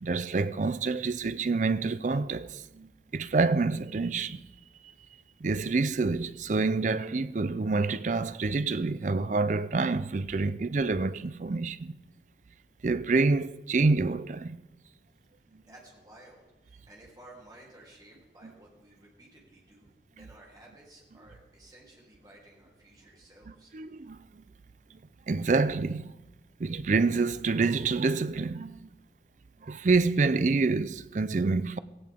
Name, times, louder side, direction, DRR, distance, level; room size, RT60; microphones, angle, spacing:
voice 1, 0.0-4.4 5.4-12.0 12.8-14.6 15.5-15.6 23.7-24.4 25.3-26.1 26.6-28.9 29.6-31.8, right 3 dB, 40° right, 0.4 m, -27 dB
voice 2, 15.6-23.7, right 1 dB, 20° right, 3.3 m, -54 dB
16.5 x 16.0 x 3.7 m
head